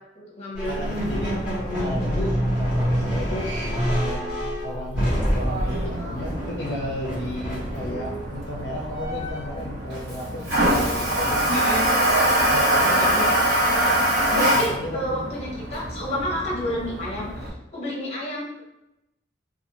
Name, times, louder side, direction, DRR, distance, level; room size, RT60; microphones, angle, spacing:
voice 1, 0.2-0.8 11.5-11.8 13.0-13.3 14.3-18.6, equal, 35° left, -4 dB, 0.8 m, -30 dB
sound 1, 0.6-9.6, equal, 5° right, 1.2 m, -27 dB
voice 2, 0.7-1.4 1.7-3.6 3.9-4.4 4.6-10.4 10.8-11.5 12.5-13.1 14.5-15.3, left 1 dB, 65° left, -3 dB, 0.4 m, -34 dB
Toilet flush, 5.3-17.5, right 1 dB, 60° right, 0.8 m, -24 dB
2.5 x 2.3 x 2.9 m, 0.90 s
head